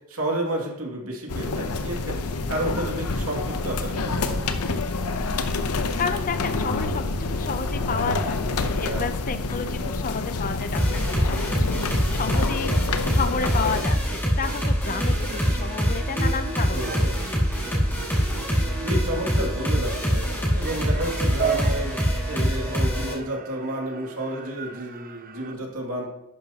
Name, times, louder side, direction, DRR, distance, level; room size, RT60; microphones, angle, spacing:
voice 1, 0.1-2.1 2.5-4.4 8.8-9.1 16.7-17.1 18.8-20.2 20.5-22.0 22.3-26.1, right 1 dB, 70° right, 0 dB, 2.5 m, -31 dB
sound 1, 1.3-13.8, left 3 dB, 85° left, 0.8 m, -27 dB
voice 2, 6.0-8.4 8.8-12.8 13.1-17.0, left 5 dB, 40° left, 10 dB, 0.6 m, -31 dB
sound 2, 10.7-23.1, equal, 10° left, 2.3 m, -24 dB
sound 3, 14.9-25.5, right 6 dB, 40° right, 0.6 m, -37 dB
11.5 x 9.3 x 2.9 m, 0.85 s
head